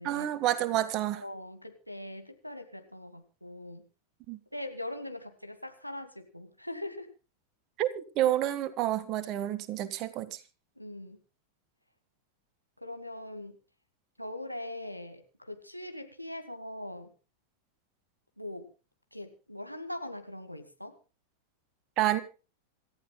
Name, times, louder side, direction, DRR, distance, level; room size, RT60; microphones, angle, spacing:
voice 1, 0.0-1.2 4.3-4.4 7.8-10.4 22.0-22.2, right 13 dB, 40° right, 1.7 m, -29 dB
voice 2, 1.2-3.8 4.5-7.1 10.8-11.2 12.8-13.6 14.2-17.1 18.4-18.7 19.1-20.9, left 1 dB, 90° left, 2.2 m, -41 dB
27.0 x 14.0 x 2.3 m
figure-of-eight pair, 90°, 0 cm